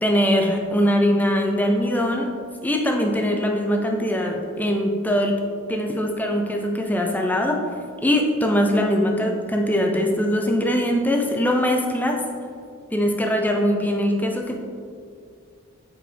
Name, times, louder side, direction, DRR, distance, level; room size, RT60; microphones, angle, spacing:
voice 1, 0.0-2.3 2.6-5.3 5.7-7.6 8.0-12.2 12.9-14.6, equal, 10° left, 2 dB, 0.5 m, -21 dB
8.3 x 4.9 x 3.4 m, 2.2 s
head